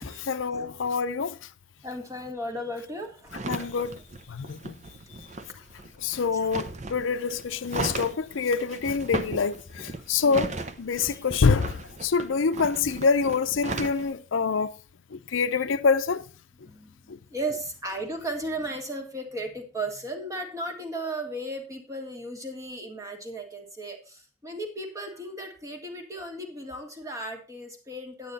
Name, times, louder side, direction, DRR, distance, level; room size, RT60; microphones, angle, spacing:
voice 1, 0.0-1.4 3.5-4.0 4.3-4.7 6.0-10.5 10.8-14.7 15.1-16.2 17.1-17.2, left 5 dB, 85° left, 0.6 m, -26 dB
voice 2, 1.8-3.3 6.3-6.5 10.2-10.4 11.1-11.2 16.6-28.3, right 1 dB, 15° right, 1.7 m, -35 dB
sound 1, 3.3-14.1, right 2 dB, 40° right, 0.7 m, -37 dB
9.2 x 9.1 x 4.0 m
head